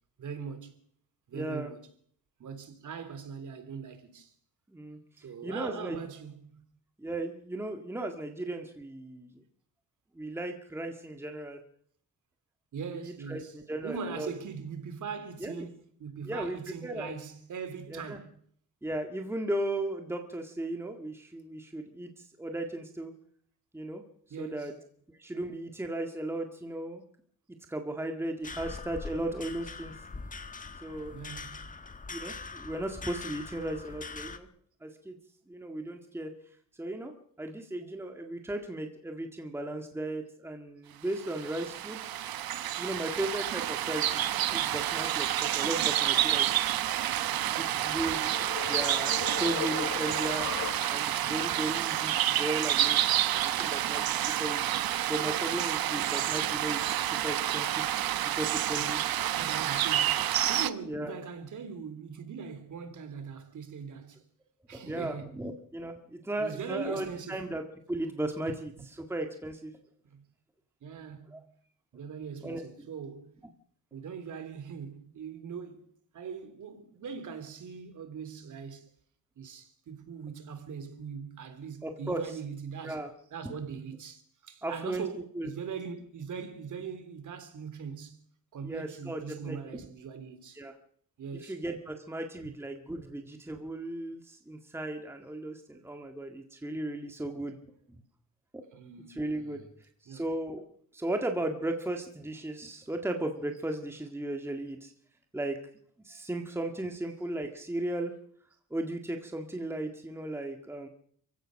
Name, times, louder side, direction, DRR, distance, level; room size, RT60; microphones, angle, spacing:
voice 1, 0.2-0.8 1.3-1.8 2.4-4.3 5.2-6.6 12.7-13.5 13.8-18.3 24.3-24.7 31.1-31.7 47.1-48.0 48.3-48.4 58.8-64.2 64.7-65.4 66.4-67.5 70.1-70.2 70.8-71.4 71.9-73.3 73.9-78.9 79.4-83.0 83.3-88.2 88.5-90.6 91.2-91.5 98.7-99.6 100.1-100.2, right 6 dB, 60° right, 3.3 m, -41 dB
voice 2, 1.3-1.7 4.7-5.0 5.4-6.0 7.0-9.4 10.1-11.6 12.9-14.3 15.4-15.7 16.2-17.1 17.9-18.2 18.8-23.1 23.7-24.0 24.4-24.7 25.1-27.0 27.7-29.9 30.8-31.1 32.1-34.5 34.8-35.2 35.5-36.3 36.8-42.3 42.8-46.6 47.6-48.3 48.7-50.5 50.9-53.0 53.4-59.0 60.9-61.1 64.7-67.6 67.9-69.7 71.3-71.4 72.4-72.6 81.8-82.4 82.8-83.1 83.4-83.5 84.6-85.0 85.3-85.5 88.6-89.8 90.6-90.8 91.3-97.6 98.5-98.6 99.1-100.7 100.9-104.9 105.3-105.6 106.0-108.2 108.7-110.9, right 1 dB, 5° right, 1.8 m, -36 dB
sound 1, 28.4-34.4, left 4 dB, 25° left, 1.5 m, -42 dB
sound 2, 41.2-60.7, right 12 dB, 90° right, 1.2 m, -29 dB
sound 3, 47.5-51.2, left 9 dB, 50° left, 1.1 m, -39 dB
28.5 x 16.0 x 6.5 m
wide cardioid pair, 165°, 35 cm